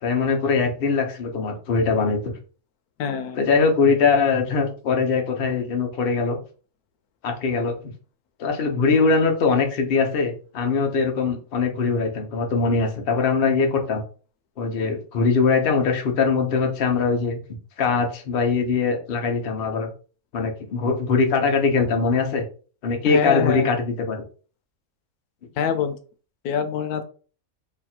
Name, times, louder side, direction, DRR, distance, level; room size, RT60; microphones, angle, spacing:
voice 1, 0.0-2.4 3.4-6.4 7.2-7.7 8.4-14.0 14.6-17.4 17.8-19.9 20.3-22.4 22.8-24.2, left 4 dB, 50° left, 3 dB, 0.8 m, -22 dB
voice 2, 3.0-3.4 23.1-23.7 25.6-26.0 26.4-27.0, left 7 dB, 90° left, 8 dB, 1.1 m, -24 dB
3.2 x 2.3 x 4.2 m, 0.39 s
omnidirectional pair, 1.5 m